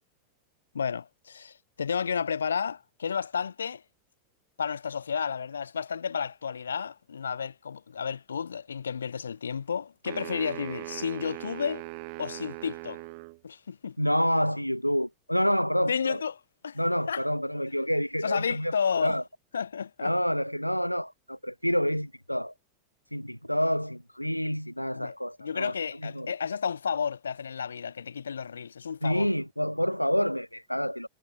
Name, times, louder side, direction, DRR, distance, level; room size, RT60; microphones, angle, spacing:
voice 1, 0.7-3.8 4.6-11.9 12.2-13.0 13.4-14.0 15.9-16.3 16.6-16.8 17.1-17.2 18.2-19.2 19.5-20.1 24.9-29.3, left 6 dB, 70° left, 1.0 m, -32 dB
sound 1, 10.1-13.4, right 31 dB, 45° right, 4.3 m, -40 dB
voice 2, 14.0-16.2 16.8-18.7 19.0-19.2 20.0-22.5 23.1-25.7 26.0-26.3 29.0-31.1, equal, 90° left, 1.5 m, -28 dB
figure-of-eight pair, 90°, 0 cm